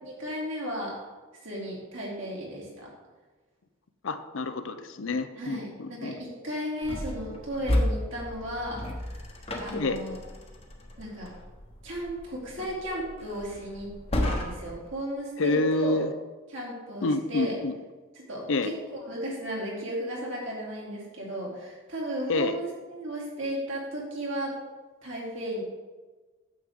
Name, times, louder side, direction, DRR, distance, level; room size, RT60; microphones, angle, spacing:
voice 1, 0.0-1.0 1.4-2.7 5.4-8.8 9.6-10.2 11.0-11.3 11.8-13.9 14.2-16.0 16.5-17.5 18.3-24.5 25.0-25.6, equal, 60° right, -4 dB, 2.8 m, -34 dB
voice 2, 4.0-6.2 9.7-10.0 15.4-16.1 17.0-17.8 18.5-18.7 22.3-22.5, left 2 dB, 60° left, 10 dB, 0.6 m, -28 dB
sound 1, 6.8-14.9, left 1 dB, 30° left, 1.1 m, -33 dB
9.3 x 7.5 x 3.6 m, 1.3 s
head